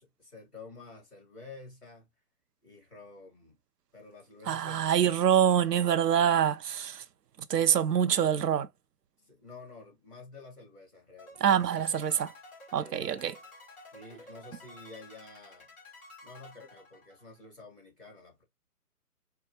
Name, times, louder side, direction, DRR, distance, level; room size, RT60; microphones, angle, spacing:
voice 1, 0.0-2.1 2.6-3.6 3.9-5.3 9.2-11.8 12.8-13.1 13.9-15.7 16.2-18.4, left 3 dB, ahead, 0.8 m, -50 dB
voice 2, 4.5-7.0 7.5-8.7 11.4-12.3 12.7-13.4, right 9 dB, 90° right, 0.6 m, -25 dB
sound 1, 11.2-17.5, left 2 dB, 25° left, 3.1 m, -52 dB
4.5 x 2.3 x 2.9 m
hypercardioid pair, 160°, 47 cm